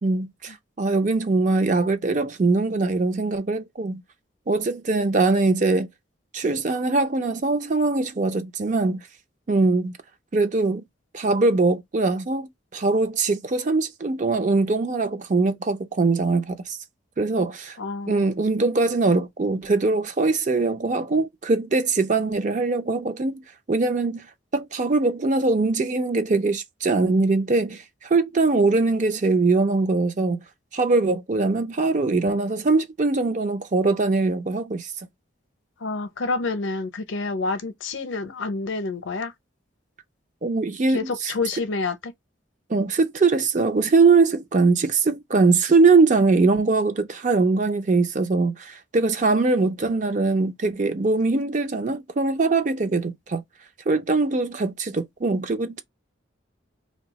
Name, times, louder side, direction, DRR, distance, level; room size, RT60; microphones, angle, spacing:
voice 1, 0.0-4.0 4.5-5.9 6.3-9.0 9.5-9.9 10.3-10.8 11.1-16.8 17.2-17.8 18.1-23.4 23.7-24.3 24.5-30.4 30.7-34.9 40.4-41.3 42.7-53.4 53.9-55.8, right 3 dB, 40° right, 0.5 m, -22 dB
voice 2, 17.8-18.3 35.8-39.3 40.9-42.1, left 3 dB, 75° left, 0.6 m, -28 dB
2.7 x 2.2 x 3.9 m
head